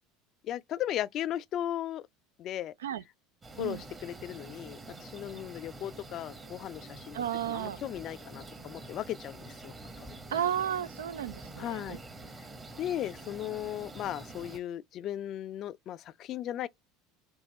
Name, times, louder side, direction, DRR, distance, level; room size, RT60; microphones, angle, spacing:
voice 1, 0.4-2.1 2.4-2.7 3.6-10.4 11.6-12.0 12.8-16.7, left 12 dB, 50° left, 0.3 m, -37 dB
sound 1, 3.4-14.6, right 2 dB, 30° right, 1.0 m, -47 dB
voice 2, 7.1-7.8 10.3-12.0, right 10 dB, 85° right, 0.3 m, -33 dB
3.6 x 2.7 x 4.0 m
hypercardioid pair, 80°, 0 cm